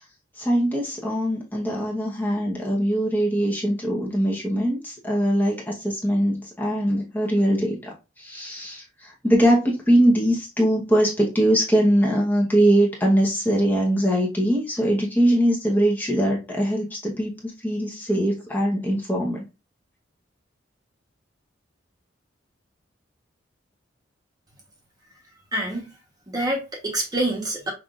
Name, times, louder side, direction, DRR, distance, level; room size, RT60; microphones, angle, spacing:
voice 1, 0.4-19.4, equal, 10° left, 1.0 m, -22 dB
voice 2, 25.5-25.9 26.3-27.7, right 1 dB, 20° right, 1.1 m, -26 dB
5.7 x 2.7 x 2.5 m
head